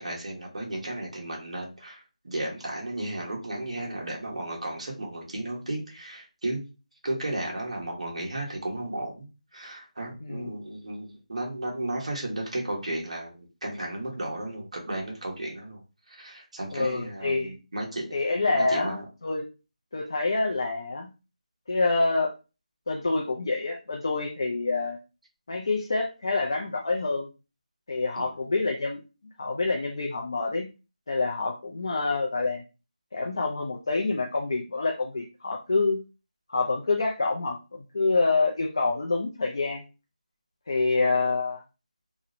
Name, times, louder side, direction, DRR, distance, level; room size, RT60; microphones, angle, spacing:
voice 1, 0.0-6.6 7.0-9.3 9.5-15.8 16.1-18.2 18.5-19.0 28.2-28.3, right 1 dB, 55° right, -1 dB, 1.0 m, -34 dB
voice 2, 10.2-10.5 16.7-17.5 18.1-19.0 19.2-19.5 19.9-21.1 21.7-22.3 22.9-25.0 25.5-27.3 27.9-29.0 29.4-30.7 31.1-32.6 33.1-36.0 36.5-37.6 37.9-39.8 40.7-41.6, left 3 dB, 35° left, 1 dB, 0.3 m, -26 dB
2.8 x 2.0 x 2.4 m, 0.30 s
figure-of-eight pair, 175°, 4 cm